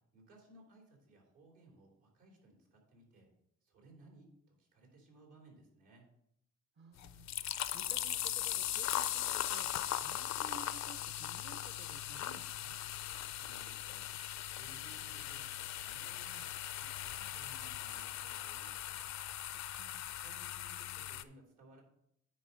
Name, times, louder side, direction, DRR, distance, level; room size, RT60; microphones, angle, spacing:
voice 1, 0.1-3.3 3.6-6.1 13.3-14.0 14.5-15.5 15.7-19.1 20.2-21.8, right 2 dB, 80° right, 0 dB, 3.0 m, -61 dB
voice 2, 6.8-7.3 7.7-9.7 10.0-12.8 19.5-20.0, right 5 dB, 40° right, 7 dB, 0.7 m, -56 dB
sound 1, 7.0-21.2, left 12 dB, 65° left, 0.5 m, -39 dB
9.4 x 4.2 x 5.2 m, 0.75 s
cardioid pair, 90°, 30 cm